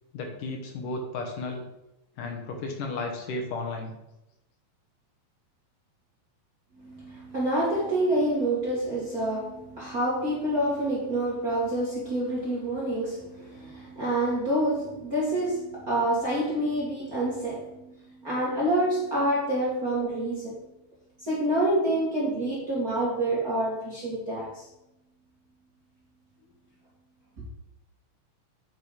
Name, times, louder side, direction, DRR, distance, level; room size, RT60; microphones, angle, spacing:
voice 1, 0.1-1.7 2.2-3.9, left 3 dB, 70° left, 2 dB, 2.5 m, -33 dB
voice 2, 6.8-17.9 18.2-20.6 21.2-24.7, right 1 dB, 35° right, -6 dB, 1.8 m, -27 dB
8.9 x 5.6 x 4.9 m, 0.90 s
omnidirectional pair, 4.1 m